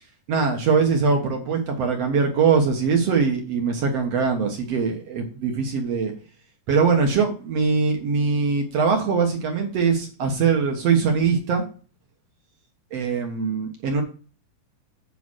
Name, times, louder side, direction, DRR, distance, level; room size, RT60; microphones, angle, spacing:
voice 1, 0.3-6.1 6.7-11.6 12.9-14.0, right 5 dB, 60° right, 3 dB, 1.8 m, -22 dB
8.5 x 5.0 x 6.2 m, 0.36 s
omnidirectional pair, 4.4 m